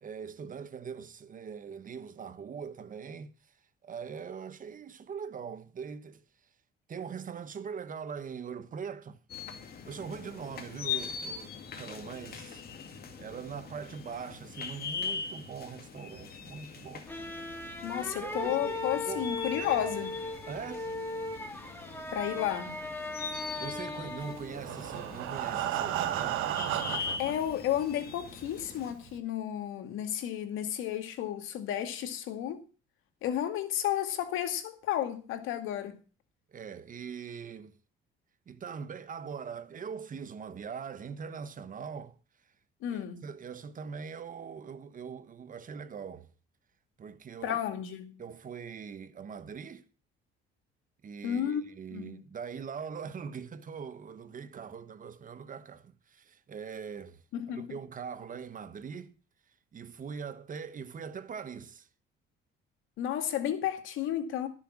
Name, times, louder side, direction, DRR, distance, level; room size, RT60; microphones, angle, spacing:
voice 1, 0.0-3.3 3.8-6.2 6.9-9.2 9.8-12.6 13.2-17.1 17.5-17.8 18.1-19.2 20.5-20.9 23.3-26.4 36.5-37.7 38.5-42.2 42.9-46.3 47.0-47.6 48.2-49.8 51.0-57.2 57.5-59.1 59.7-61.9, right 6 dB, 40° right, 1.3 m, -42 dB
sound 1, 9.3-28.9, left 6 dB, 50° left, 2.2 m, -42 dB
sound 2, 17.1-24.6, left 2 dB, 10° left, 2.5 m, -38 dB
voice 2, 17.8-20.2 22.1-22.7 27.2-32.6 33.2-36.0 42.8-43.2 47.4-48.2 51.2-51.6 51.9-52.2 57.3-57.8 63.0-64.5, left 10 dB, 80° left, 2.2 m, -32 dB
Breathing, 24.4-27.3 28.1-28.2 28.6-28.7 29.1-29.2, right 12 dB, 85° right, 1.5 m, -33 dB
12.5 x 6.9 x 7.3 m
cardioid pair, 100°, 20 cm